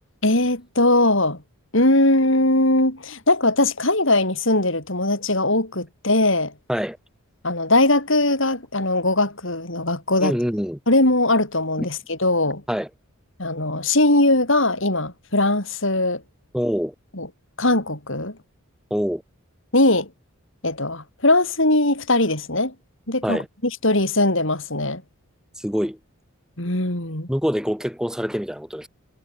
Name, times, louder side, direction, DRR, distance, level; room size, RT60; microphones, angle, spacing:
voice 1, 0.2-1.4 1.7-6.5 7.4-10.3 10.9-12.6 13.4-16.2 17.1-17.3 17.6-18.4 19.7-20.1 20.6-22.7 23.1-23.4 23.8-25.0 26.6-27.3, left 2 dB, 60° left, 5.3 m, -20 dB
voice 2, 10.2-10.8 11.8-11.9 12.7-12.9 16.5-16.9 18.9-19.2 23.2-23.5 25.6-26.0 27.3-28.9, equal, 5° right, 7.7 m, -25 dB
head